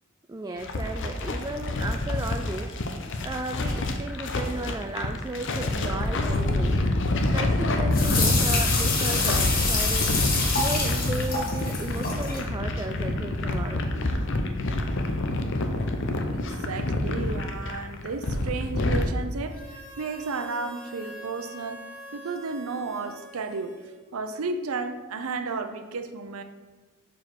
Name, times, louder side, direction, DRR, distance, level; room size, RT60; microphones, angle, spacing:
voice 1, 0.3-2.7 3.2-6.8 7.3-10.2 10.6-13.9, right 2 dB, 15° right, 4 dB, 0.3 m, -34 dB
sound 1, 0.6-19.1, left 2 dB, 60° left, 0.7 m, -27 dB
sound 2, 7.9-12.4, left 3 dB, 45° left, 1.2 m, -27 dB
voice 2, 16.3-23.7 24.1-26.4, right 4 dB, 85° right, 8 dB, 0.6 m, -33 dB
Harmonica, 19.4-24.3, equal, 5° left, 1.8 m, -45 dB
5.0 x 4.7 x 6.1 m, 1.3 s
head